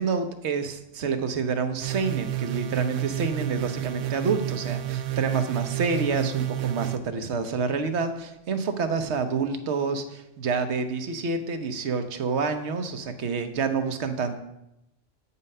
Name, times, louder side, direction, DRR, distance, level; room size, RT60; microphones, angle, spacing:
voice 1, 0.0-14.4, right 5 dB, 65° right, 8 dB, 1.1 m, -28 dB
sound 1, 1.8-7.0, right 13 dB, 85° right, 1.0 m, -30 dB
8.6 x 5.6 x 5.4 m, 0.86 s
omnidirectional pair, 1.3 m